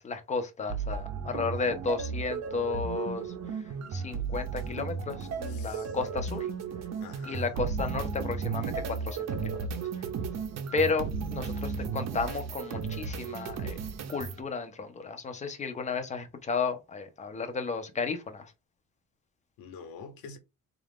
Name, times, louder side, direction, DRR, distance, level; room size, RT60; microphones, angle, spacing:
voice 1, 0.0-6.5 7.2-10.1 10.7-13.8 14.1-18.5, left 4 dB, 20° left, 0.5 m, -33 dB
sound 1, 0.7-14.4, right 5 dB, 50° right, 0.6 m, -34 dB
voice 2, 5.5-5.9 7.0-7.5 19.6-20.4, left 5 dB, 85° left, 1.1 m, -46 dB
3.7 x 2.5 x 3.5 m
cardioid pair, 160°, 34 cm